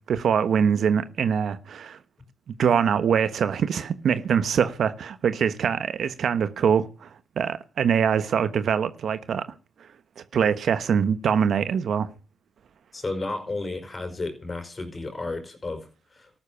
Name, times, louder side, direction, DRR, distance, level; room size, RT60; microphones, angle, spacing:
voice 1, 0.1-2.0 2.6-7.1 7.4-9.5 10.2-12.1, right 7 dB, 60° right, 1.2 m, -23 dB
voice 2, 12.9-16.3, left 3 dB, 25° left, 5.1 m, -33 dB
14.0 x 12.0 x 6.8 m
cardioid pair, 90°, 0 cm